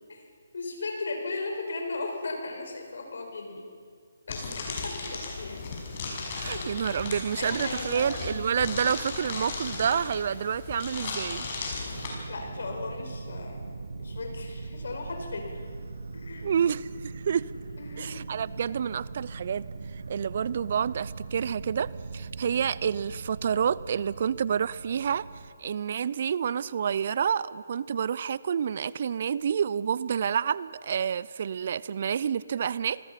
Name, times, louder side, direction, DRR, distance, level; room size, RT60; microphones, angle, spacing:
voice 1, 0.5-3.6 4.3-5.7 6.5-6.8 7.4-8.1 11.9-13.6 14.0-15.6 16.1-16.5 17.8-18.1, left 3 dB, 60° left, 3 dB, 5.3 m, -36 dB
sound 1, 4.3-12.1, left 4 dB, 40° left, 6.0 m, -36 dB
voice 2, 6.3-11.5 16.4-17.5 18.0-19.6 20.1-25.3 25.6-33.0, right 7 dB, 45° right, 20 dB, 0.5 m, -28 dB
sound 2, 11.9-25.5, right 4 dB, 65° right, 1.3 m, -40 dB
27.0 x 20.0 x 5.8 m, 2.1 s
figure-of-eight pair, 145°, 0 cm